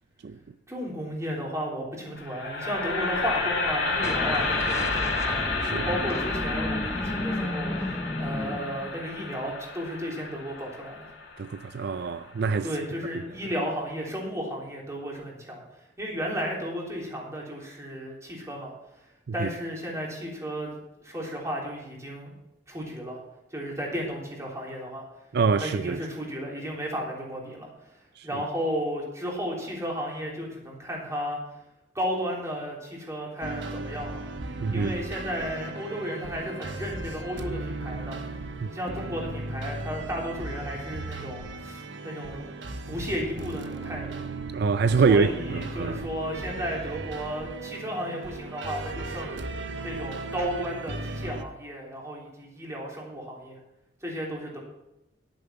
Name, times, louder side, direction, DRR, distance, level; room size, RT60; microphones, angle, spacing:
voice 1, 0.7-7.7 8.2-11.1 12.6-15.6 16.0-18.7 19.3-22.3 22.7-23.2 23.5-25.0 25.6-31.4 32.0-34.2 34.7-38.2 38.7-44.2 45.1-49.4 49.8-53.6 54.0-54.6, equal, 15° right, 3.5 m, -34 dB
sound 1, 2.2-12.3, left 3 dB, 85° left, 2.3 m, -31 dB
sound 2, 4.0-9.2, left 1 dB, 15° left, 0.6 m, -32 dB
voice 2, 11.4-12.7 19.4-19.5 25.3-26.0 28.2-28.3 34.6-34.9 38.6-38.7 44.5-46.0, right 5 dB, 60° right, 0.4 m, -25 dB
sound 3, 33.4-51.4, right 2 dB, 80° right, 1.0 m, -36 dB
11.0 x 9.1 x 5.8 m
head